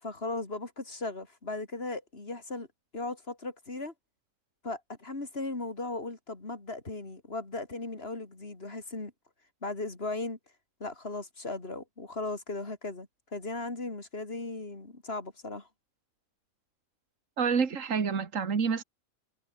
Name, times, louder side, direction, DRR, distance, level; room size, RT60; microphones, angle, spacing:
voice 1, 0.0-2.7 2.9-3.9 4.6-9.1 9.6-10.4 10.8-15.7, left 2 dB, 45° left, 3.8 m, -37 dB
voice 2, 17.4-18.8, right 6 dB, 65° right, 2.2 m, -28 dB
omnidirectional pair, 1.4 m